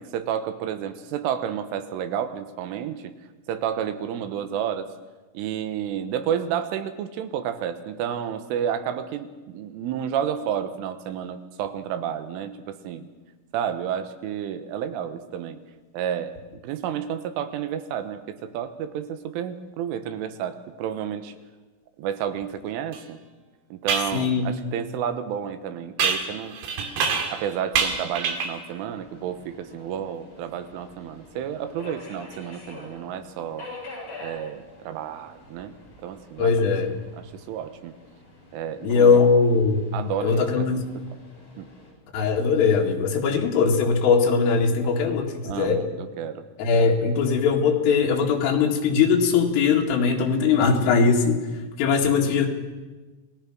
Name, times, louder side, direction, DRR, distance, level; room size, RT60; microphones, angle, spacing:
voice 1, 0.0-3.1 3.5-4.9 5.4-13.1 13.5-15.6 15.9-16.4 16.6-21.3 22.0-23.2 23.7-26.6 27.3-33.7 34.2-35.7 36.0-36.5 37.2-38.0 38.5-39.2 39.9-40.7 41.6-41.7 45.4-46.5, right 9 dB, 90° right, 10 dB, 3.7 m, -31 dB
sound 1, 22.9-23.0 23.9-24.1 26.0-27.4 27.7-28.6, right 5 dB, 60° right, 3.8 m, -26 dB
voice 2, 24.1-24.5 36.4-36.9 38.8-39.9 40.2-40.8 42.1-45.8 46.6-51.4 51.8-52.5, left 5 dB, 85° left, 0 dB, 4.8 m, -20 dB
Subway metro underground, 28.9-41.9, left 2 dB, 30° left, 7.5 m, -46 dB
28.5 x 19.0 x 6.2 m, 1.2 s
omnidirectional pair, 5.6 m